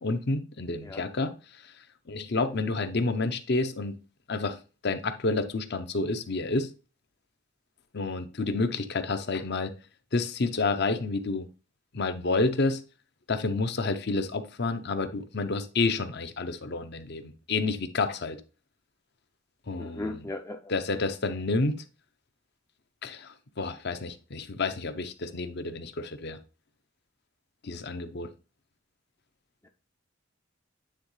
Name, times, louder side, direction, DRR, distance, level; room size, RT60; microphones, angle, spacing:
voice 1, 0.0-1.3 2.1-3.9 4.3-4.6 4.8-6.7 7.9-9.7 10.1-11.5 11.9-12.8 13.3-18.4 19.7-20.2 20.7-21.8 23.0-26.4 27.6-28.3, left 3 dB, 55° left, 0.8 m, -29 dB
voice 2, 19.8-20.7, left 2 dB, 15° left, 0.4 m, -37 dB
9.5 x 3.9 x 3.2 m
head